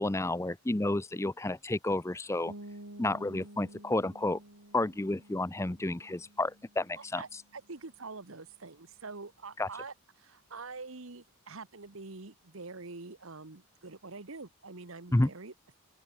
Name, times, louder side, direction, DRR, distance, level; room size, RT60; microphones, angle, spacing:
voice 1, 0.0-2.5 3.0-4.4 4.7-7.2 9.6-9.7 15.1-15.3, left 2 dB, 10° left, 0.5 m, -30 dB
sound 1, 2.5-8.1, right 1 dB, 80° right, 6.0 m, -51 dB
voice 2, 7.0-15.5, right 3 dB, 60° right, 1.3 m, -45 dB
open air
head